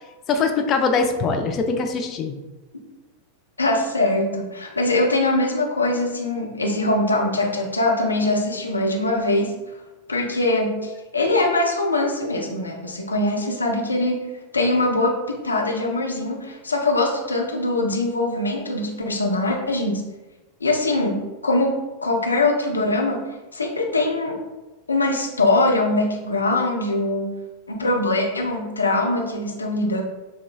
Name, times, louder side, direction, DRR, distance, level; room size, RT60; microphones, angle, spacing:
voice 1, 0.3-2.3, left 4 dB, 30° left, 5 dB, 0.5 m, -22 dB
voice 2, 3.6-9.5 10.1-14.3 14.5-20.0 20.6-21.8 22.0-23.2 23.5-24.4 24.9-27.4 27.7-30.0, left 2 dB, 80° left, 1 dB, 0.6 m, -22 dB
5.9 x 2.2 x 2.3 m, 1.1 s
figure-of-eight pair, 90°, 0 cm